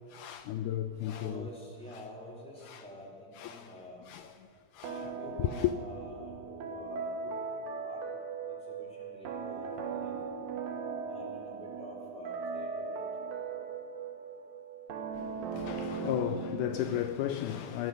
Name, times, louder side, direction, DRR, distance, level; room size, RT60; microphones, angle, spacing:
voice 1, 0.1-1.5 2.6-2.8 3.4-3.7 4.1-4.3 4.7-5.1 5.4-5.7 15.2-17.9, left 12 dB, 85° left, 1.7 m, -34 dB
voice 2, 1.1-4.1 5.0-7.4 7.8-8.0 8.5-10.1 11.1-13.0, left 1 dB, ahead, 2.7 m, -48 dB
sound 1, 4.8-17.2, right 5 dB, 80° right, 3.1 m, -39 dB
18.5 x 10.5 x 6.5 m
omnidirectional pair, 4.1 m